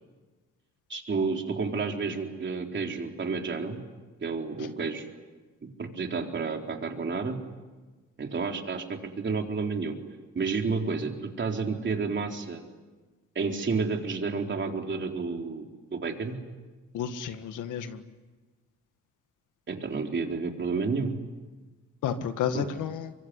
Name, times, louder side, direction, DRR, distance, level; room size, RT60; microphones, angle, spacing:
voice 1, 0.9-3.8 4.2-5.1 5.8-7.4 8.2-10.0 10.3-12.6 13.3-16.4 19.7-21.1 22.5-22.6, right 4 dB, 40° right, 3 dB, 4.1 m, -30 dB
voice 2, 16.9-18.0 22.0-23.1, left 8 dB, 80° left, 9 dB, 1.9 m, -31 dB
25.0 x 24.0 x 9.8 m, 1.3 s
cardioid pair, 90°, 30 cm